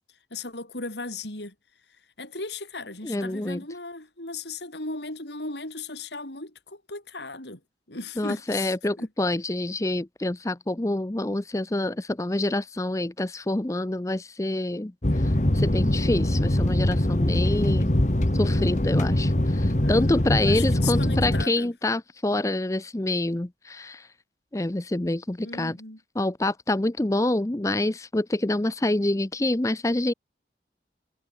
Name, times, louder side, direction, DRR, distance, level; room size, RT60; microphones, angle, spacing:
voice 1, 0.3-1.5 2.2-7.6 7.9-9.0 19.8-20.1 20.4-21.7 25.4-26.0, left 3 dB, 85° left, 7.6 m, -37 dB
voice 2, 3.0-3.6 8.2-17.9 18.3-24.1 24.5-25.8 26.2-30.1, left 1 dB, 20° left, 0.6 m, -27 dB
sound 1, 15.0-21.5, left 1 dB, 45° left, 1.5 m, -23 dB
head